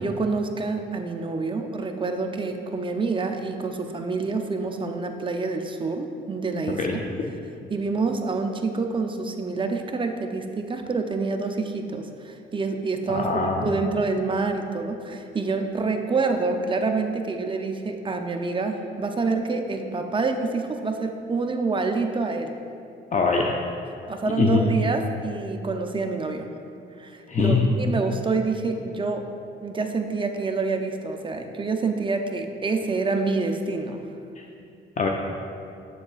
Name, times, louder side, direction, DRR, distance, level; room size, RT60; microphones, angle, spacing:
voice 1, 0.0-7.0 7.7-22.6 24.1-26.5 27.0-29.3 29.6-34.0, right 3 dB, 25° right, 4 dB, 0.5 m, -27 dB
voice 2, 13.1-13.7 23.1-23.5 24.4-24.6 27.3-27.7 34.4-34.5 35.0-35.1, left 4 dB, 40° left, 1 dB, 0.5 m, -22 dB
7.5 x 7.1 x 2.4 m, 2.6 s
cardioid pair, 90°, 20 cm